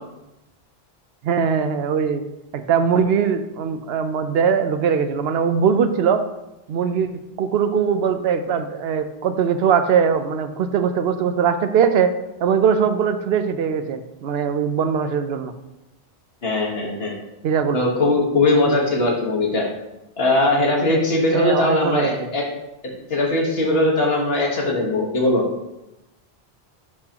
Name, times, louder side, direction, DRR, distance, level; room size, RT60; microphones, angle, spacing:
voice 1, 1.2-2.2 2.5-6.2 6.7-7.1 7.4-12.1 12.4-15.5 17.4-17.8 21.3-22.3, right 7 dB, 75° right, 9 dB, 0.8 m, -21 dB
voice 2, 16.4-17.1 17.7-19.7 20.2-22.4 23.1-25.4, left 2 dB, 70° left, -2 dB, 1.6 m, -20 dB
10.5 x 3.8 x 2.9 m, 0.94 s
omnidirectional pair, 1.0 m